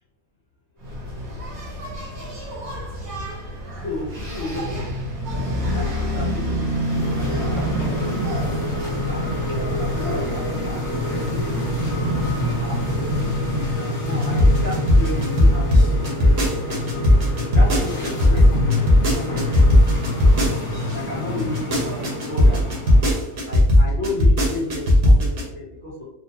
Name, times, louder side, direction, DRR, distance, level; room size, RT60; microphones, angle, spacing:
voice 1, 0.7-1.3 1.6-1.7 3.7-4.8 5.3-12.2 12.4-20.4 20.9-22.7 23.3-26.0, left 2 dB, 10° left, -8 dB, 1.4 m, -34 dB
Engine, 0.8-13.8, equal, 80° right, 1.6 m, -29 dB
sound 1, 6.7-23.3, left 1 dB, 45° left, 1.4 m, -27 dB
sound 2, 14.2-20.9 21.4-25.4, left 1 dB, 55° right, 1.2 m, -15 dB
3.9 x 2.4 x 2.8 m, 0.76 s
omnidirectional pair, 1.5 m